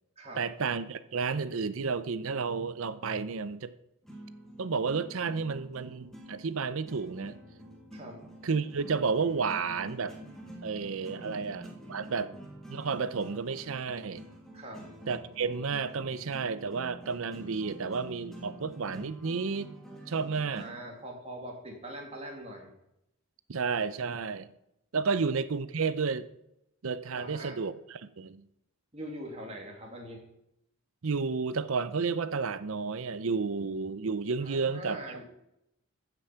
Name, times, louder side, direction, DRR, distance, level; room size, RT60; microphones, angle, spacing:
voice 1, 0.4-3.7 4.6-7.3 8.4-10.1 10.6-12.4 12.7-14.2 15.1-19.7 20.1-20.7 23.5-24.5 24.9-26.3 26.8-28.4 31.0-35.3, right 5 dB, 70° right, 14 dB, 0.6 m, -31 dB
sound 1, 4.0-21.0, right 1 dB, ahead, 1.9 m, -48 dB
voice 2, 7.9-8.2 11.2-11.4 11.7-12.3 14.5-14.8 20.5-22.7 27.1-27.6 28.9-30.2 34.4-35.3, right 1 dB, 30° right, 0 dB, 2.5 m, -43 dB
14.5 x 6.0 x 5.7 m, 0.82 s
head